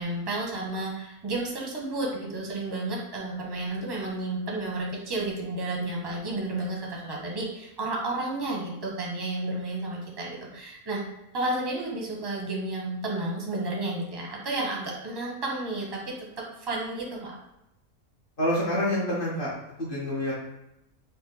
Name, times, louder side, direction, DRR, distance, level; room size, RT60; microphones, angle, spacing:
voice 1, 0.0-11.0 11.3-17.3, right 2 dB, 25° right, -2 dB, 0.7 m, -32 dB
voice 2, 18.4-19.5 19.8-20.3, left 1 dB, 40° left, -8 dB, 1.2 m, -27 dB
4.1 x 2.3 x 4.0 m, 0.87 s
omnidirectional pair, 1.5 m